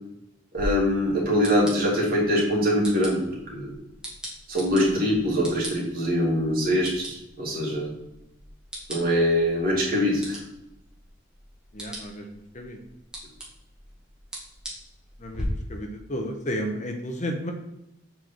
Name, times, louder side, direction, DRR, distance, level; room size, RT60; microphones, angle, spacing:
voice 1, 0.5-3.7 4.5-7.9 8.9-10.4, equal, 50° right, -4 dB, 2.8 m, -23 dB
sound 1, 0.6-15.4, equal, 5° right, 2.0 m, -42 dB
voice 2, 11.7-12.8 15.2-17.5, equal, 40° left, 3 dB, 1.0 m, -33 dB
7.6 x 4.6 x 4.4 m, 0.88 s
head